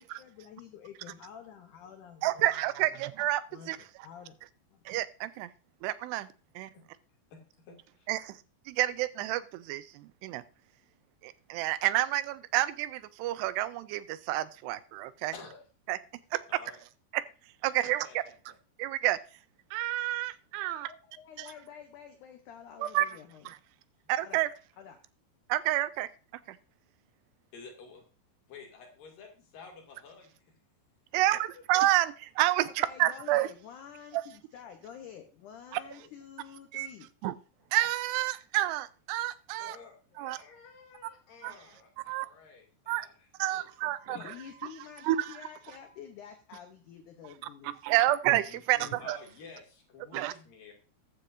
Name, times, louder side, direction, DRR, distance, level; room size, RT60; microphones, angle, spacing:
voice 1, 0.0-2.6 3.5-4.4 4.7-4.8 20.7-23.5 24.2-24.4 24.8-25.0 32.6-37.1 44.1-48.0 48.4-49.0, left 8 dB, 80° left, 6 dB, 1.8 m, -49 dB
voice 2, 2.2-3.8 4.9-5.5 5.8-6.3 6.6-6.7 8.1-8.4 8.7-10.4 11.2-15.3 15.9-16.0 16.3-16.4 17.1-17.2 17.6-18.1 18.8-19.2 19.7-20.9 21.4-21.5 22.8-23.1 23.5-23.6 24.1-24.5 25.5-26.1 26.5-26.6 31.1-33.5 34.1-34.2 35.7-35.8 36.7-36.9 37.2-37.3 37.7-39.8 40.2-40.4 41.4-41.5 42.1-42.3 42.9-43.1 43.4-44.3 45.1-45.2 47.6-49.2 50.1-50.3, right 15 dB, 85° right, 15 dB, 2.7 m, -29 dB
voice 3, 7.7-8.1 15.3-15.6 16.5-16.8 17.8-18.2 18.5-18.6 27.5-28.1 28.5-30.5 31.1-31.4 36.0-36.1 39.6-43.7 44.1-44.3 49.0-50.7, left 5 dB, 55° left, 1 dB, 3.8 m, -51 dB
sound 1, 43.4-46.0, right 2 dB, 30° right, 5.4 m, -60 dB
14.5 x 9.8 x 2.6 m, 0.35 s
omnidirectional pair, 4.9 m